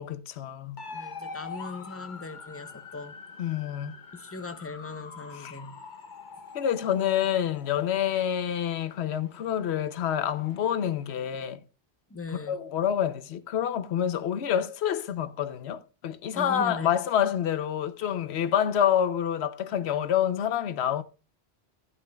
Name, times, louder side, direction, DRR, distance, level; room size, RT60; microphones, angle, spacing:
voice 1, 0.0-0.8 3.4-4.0 5.3-5.6 6.5-11.6 12.5-21.0, left 9 dB, 85° left, 0.9 m, -27 dB
sound 1, 0.8-11.5, left 4 dB, 50° left, 1.0 m, -45 dB
voice 2, 0.9-3.2 4.1-5.8 12.1-12.6 16.3-16.9, left 3 dB, 15° left, 0.6 m, -39 dB
12.0 x 10.5 x 2.3 m
omnidirectional pair, 1.1 m